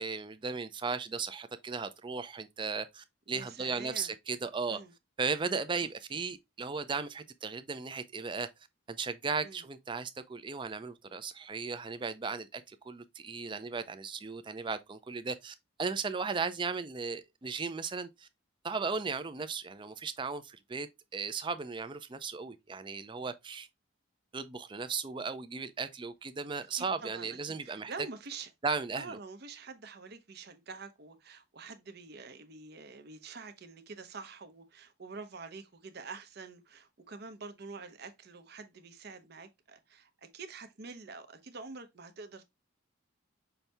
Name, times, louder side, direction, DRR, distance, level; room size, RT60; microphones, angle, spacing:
voice 1, 0.0-4.8 5.2-8.5 8.9-18.3 18.6-20.9 21.1-23.7 24.3-27.9 28.6-29.2, right 4 dB, 25° right, 0.4 m, -36 dB
voice 2, 3.3-4.1 4.7-4.9 9.4-9.6 26.7-27.4 27.6-28.5 28.9-42.4, right 4 dB, 50° right, 0.7 m, -46 dB
5.7 x 2.7 x 3.3 m
head